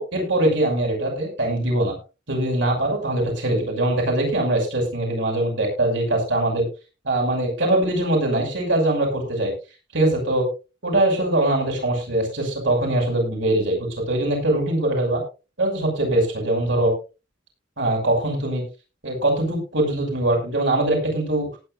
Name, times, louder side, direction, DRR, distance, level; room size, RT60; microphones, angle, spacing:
voice 1, 0.0-1.9 2.3-6.7 7.0-9.5 9.9-10.4 10.8-15.2 15.6-16.9 17.8-18.6 19.0-21.5, right 1 dB, 75° right, 1 dB, 6.1 m, -22 dB
18.5 x 10.0 x 2.5 m, 0.30 s
head